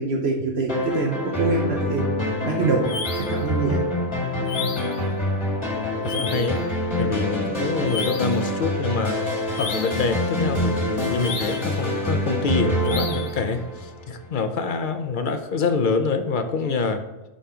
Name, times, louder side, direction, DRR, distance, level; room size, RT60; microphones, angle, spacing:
voice 1, 0.0-2.1 2.4-2.8 3.2-3.8, right 3 dB, 60° right, 0 dB, 1.1 m, -24 dB
sound 1, 0.7-14.2, left 1 dB, 25° left, 1.8 m, -26 dB
sound 2, 2.9-3.4 4.5-5.0 6.0-6.6 7.9-8.4 9.5-10.1 11.2-11.8 12.8-13.4, left 5 dB, 65° left, 1.1 m, -33 dB
voice 2, 4.5-4.9 5.7-6.6 7.0-9.2 9.6-17.0, left 4 dB, 50° left, 8 dB, 0.7 m, -26 dB
5.7 x 5.6 x 5.0 m, 1.0 s
omnidirectional pair, 1.2 m